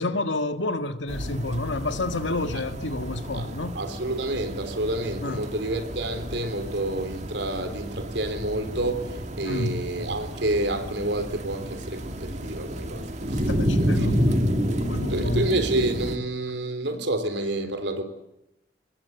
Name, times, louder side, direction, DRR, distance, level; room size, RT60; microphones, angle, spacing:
voice 1, 0.0-3.7 5.2-5.5 9.4-9.9 13.5-14.4 14.8-15.5, left 2 dB, 80° left, 1.8 m, -29 dB
sound 1, 1.1-16.2, equal, 35° right, 2.1 m, -30 dB
voice 2, 3.3-13.5 14.0-14.1 15.1-18.0, right 1 dB, 70° right, 3.5 m, -29 dB
23.5 x 20.5 x 8.3 m
head